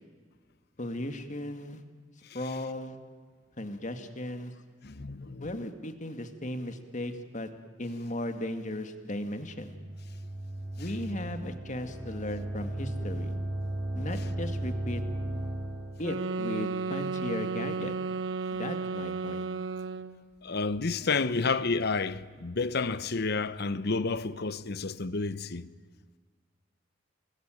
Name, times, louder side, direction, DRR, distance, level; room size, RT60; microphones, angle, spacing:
voice 1, 0.8-1.8 2.3-3.0 3.6-4.5 5.4-7.5 7.8-9.7 10.8-13.3 13.9-15.0 16.0-18.0 18.5-19.4, left 1 dB, 40° left, 2.1 m, -36 dB
voice 2, 4.8-5.5 20.4-25.7, left 4 dB, 60° left, 0.9 m, -30 dB
sound 1, 9.2-16.1, right 1 dB, 10° right, 5.3 m, -35 dB
sound 2, 16.0-20.2, right 4 dB, 80° right, 1.3 m, -33 dB
29.0 x 20.5 x 9.1 m
head